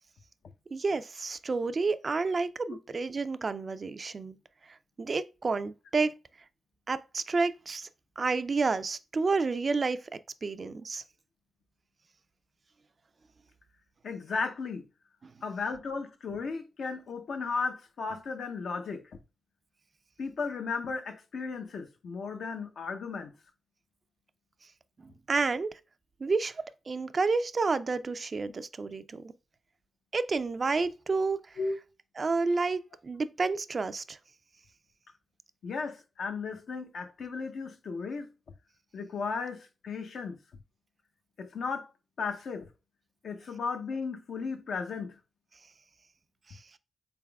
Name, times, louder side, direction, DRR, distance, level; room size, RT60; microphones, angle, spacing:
voice 1, 0.7-4.4 5.0-6.1 6.9-7.9 8.2-10.0 10.4-11.0 15.2-15.3 25.0-25.7 26.2-29.3 30.1-31.4 32.2-34.2 46.5-46.6, right 4 dB, 45° right, 0.3 m, -30 dB
voice 2, 14.0-14.9 15.4-19.1 20.2-23.3 31.6-31.8 35.6-38.3 38.9-40.4 41.4-41.9 42.2-42.7 43.2-45.2, left 4 dB, 75° left, 0.6 m, -35 dB
3.9 x 3.5 x 2.2 m
cardioid pair, 65°, 0 cm